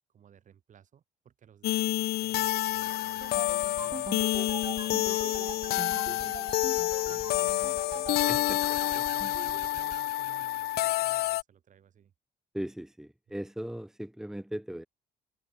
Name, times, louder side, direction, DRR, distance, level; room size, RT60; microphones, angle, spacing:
voice 1, 0.1-5.4 6.0-6.4 7.0-12.1, right 8 dB, 50° right, 7.8 m, -57 dB
sound 1, 1.6-11.4, left 16 dB, 70° left, 0.6 m, -28 dB
sound 2, 3.2-10.1, right 5 dB, 25° right, 1.3 m, -42 dB
voice 2, 8.3-8.6 8.9-9.0 12.5-14.9, equal, 5° right, 1.9 m, -38 dB
cardioid pair, 110°, 17 cm